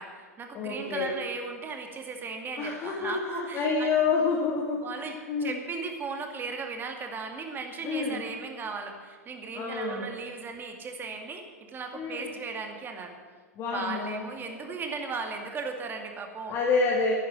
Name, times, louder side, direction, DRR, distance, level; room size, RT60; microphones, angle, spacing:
voice 1, 0.0-3.9 4.8-13.1 13.7-16.5, right 4 dB, 25° right, 4 dB, 2.4 m, -37 dB
voice 2, 0.5-1.1 2.6-5.6 7.8-8.2 9.5-10.1 11.9-12.2 13.6-14.2 14.6-14.8 16.5-17.1, left 4 dB, 35° left, -3 dB, 2.7 m, -28 dB
11.0 x 11.0 x 9.5 m, 1.5 s
hypercardioid pair, 100°, 9 cm